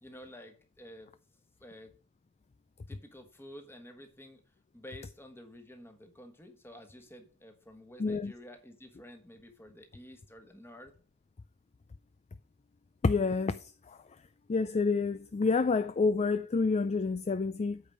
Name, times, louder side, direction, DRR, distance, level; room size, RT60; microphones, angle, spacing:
voice 1, 0.0-1.1 1.6-1.9 2.9-4.4 4.7-10.9, equal, 10° left, 1.4 m, -51 dB
voice 2, 8.0-8.3 13.0-14.0 14.5-17.8, left 4 dB, 30° left, 0.3 m, -28 dB
8.7 x 5.1 x 5.0 m
head